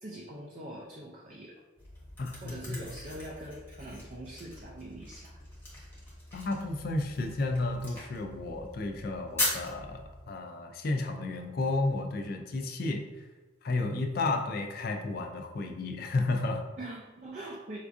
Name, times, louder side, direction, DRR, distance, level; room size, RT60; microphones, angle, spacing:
voice 1, 0.0-1.6 2.4-5.4 16.8-17.8, right 1 dB, 35° right, -2 dB, 0.3 m, -43 dB
sound 1, 1.8-10.2, left 1 dB, 10° left, 0.9 m, -40 dB
voice 2, 2.2-2.8 6.3-13.0 13.6-16.6, left 2 dB, 50° left, 4 dB, 0.4 m, -32 dB
4.4 x 2.4 x 2.5 m, 1.2 s
head